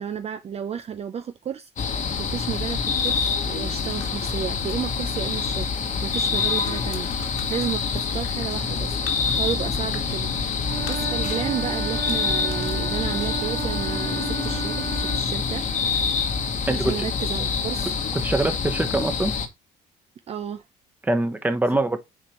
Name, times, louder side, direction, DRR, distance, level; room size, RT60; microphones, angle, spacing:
voice 1, 0.0-5.7 6.0-7.1 7.5-10.3 10.9-15.6 16.6-18.0 20.3-20.6, right 8 dB, 40° right, 0.5 m, -32 dB
sound 1, 1.8-19.5, left 5 dB, 45° left, 1.3 m, -26 dB
sound 2, 3.9-13.1, left 7 dB, 70° left, 2.0 m, -47 dB
Wind instrument woodwind instrument, 10.6-15.3, right 8 dB, 65° right, 2.0 m, -33 dB
voice 2, 16.7-17.1 18.2-19.3 21.0-22.0, right 2 dB, 10° right, 1.1 m, -23 dB
7.4 x 4.3 x 3.1 m
cardioid pair, 110°, 17 cm